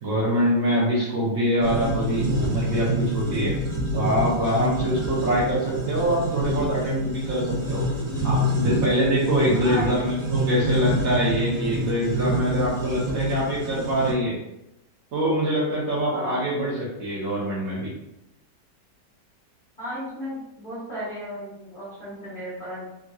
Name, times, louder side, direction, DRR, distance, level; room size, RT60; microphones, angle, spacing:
voice 1, 0.0-3.6 3.9-7.8 8.2-14.4 15.1-17.9, equal, 60° right, -5 dB, 1.2 m, -24 dB
sound 1, 1.6-14.1, equal, 45° right, 1.3 m, -27 dB
voice 2, 9.5-9.9 10.4-10.5 16.1-16.4 19.8-22.9, equal, 35° left, -9 dB, 1.3 m, -35 dB
3.6 x 2.8 x 2.3 m, 0.88 s
omnidirectional pair, 1.8 m